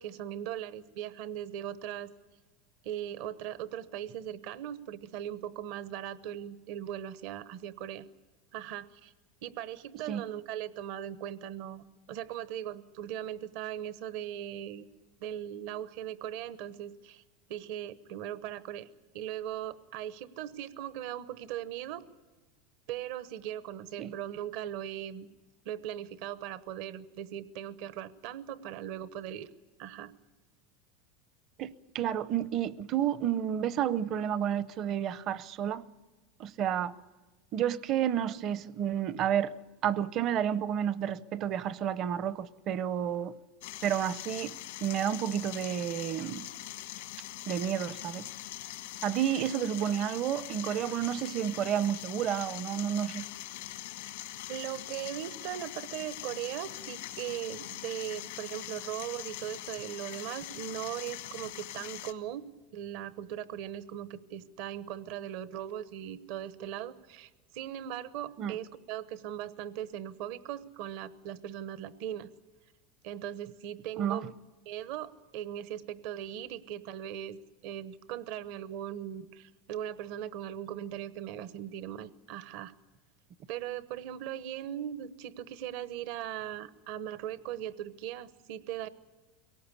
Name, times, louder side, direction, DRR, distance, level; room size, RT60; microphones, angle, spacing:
voice 1, 0.0-2.1 2.8-8.0 8.5-9.1 9.4-14.9 15.2-17.2 17.5-18.9 19.1-22.1 22.9-25.3 25.6-29.5 29.8-30.1 54.5-62.4 62.7-72.3 73.0-74.3 74.7-77.4 77.6-82.7 83.5-88.9, right 11 dB, 65° right, 0.9 m, -39 dB
voice 2, 31.6-35.8 36.4-36.9 37.5-39.5 39.8-43.3 43.8-44.6 44.8-46.5 47.5-48.3 49.0-53.3 68.4-68.6 74.0-74.2, right 10 dB, 40° right, 0.7 m, -30 dB
sound 1, 43.6-62.1, left 15 dB, 85° left, 1.2 m, -42 dB
23.0 x 18.0 x 8.4 m
supercardioid pair, 140°, 0 cm